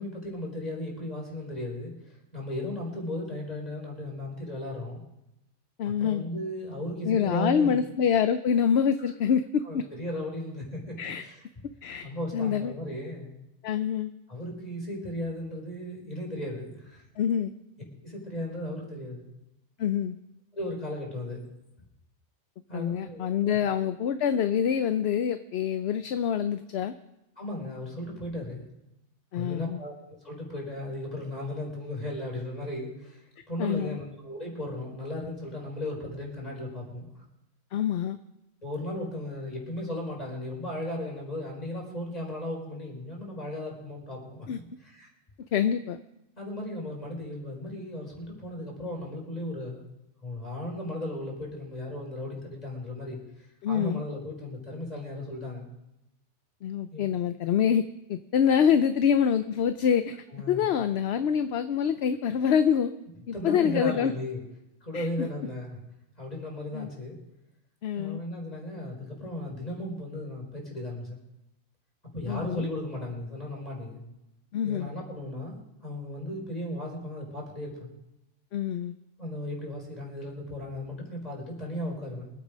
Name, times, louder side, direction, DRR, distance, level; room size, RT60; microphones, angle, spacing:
voice 1, 0.0-5.0 5.8-7.8 9.6-11.4 12.0-13.3 14.3-17.0 18.0-19.3 20.5-21.4 22.7-23.6 27.4-28.7 29.3-29.9 30.2-37.1 38.6-44.5 44.8-45.1 46.4-49.8 50.2-53.2 53.7-55.7 56.9-57.0 60.3-60.6 63.3-64.4 64.8-65.8 66.2-67.2 67.9-71.2 72.1-74.0 74.6-77.9 79.2-82.3, left 1 dB, 35° left, -2 dB, 4.9 m, -36 dB
voice 2, 5.8-6.3 7.0-9.8 11.0-11.2 11.8-12.7 13.6-14.1 17.2-17.5 19.8-20.2 22.7-26.9 29.3-29.8 33.6-34.0 37.7-38.2 44.5-44.6 45.5-46.0 53.6-54.0 56.6-57.8 58.1-62.9 63.3-64.1 64.9-65.1 66.7-66.9 67.8-68.2 72.3-72.7 74.5-74.9 78.5-78.9, left 8 dB, 65° left, 10 dB, 0.9 m, -26 dB
24.5 x 8.8 x 5.1 m, 0.90 s
omnidirectional pair, 1.2 m